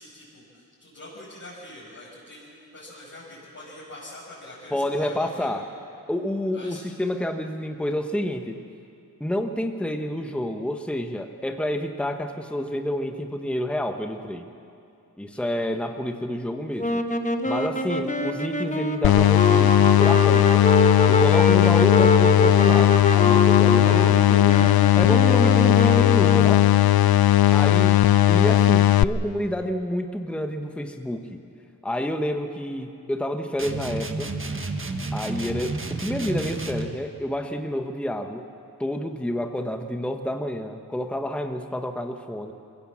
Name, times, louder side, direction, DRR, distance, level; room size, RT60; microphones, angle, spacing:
voice 1, 0.0-5.5 6.5-6.8 15.3-15.5 26.3-26.6 27.4-28.0, left 1 dB, 40° left, -8 dB, 5.9 m, -44 dB
voice 2, 4.7-5.7 6.1-8.6 9.2-14.4 15.2-17.0 17.4-20.6 21.1-26.6 27.5-27.9 28.3-31.4 31.8-34.3 35.1-38.5 38.8-42.5, left 1 dB, 5° left, 5 dB, 1.2 m, -29 dB
sound 1, 16.8-26.8, left 2 dB, 20° left, 1.4 m, -25 dB
sound 2, 19.0-29.0, left 13 dB, 65° left, 0.6 m, -17 dB
sound 3, 33.6-37.0, right 3 dB, 30° right, 1.5 m, -31 dB
22.0 x 16.5 x 7.4 m, 2.5 s
cardioid pair, 60°, 39 cm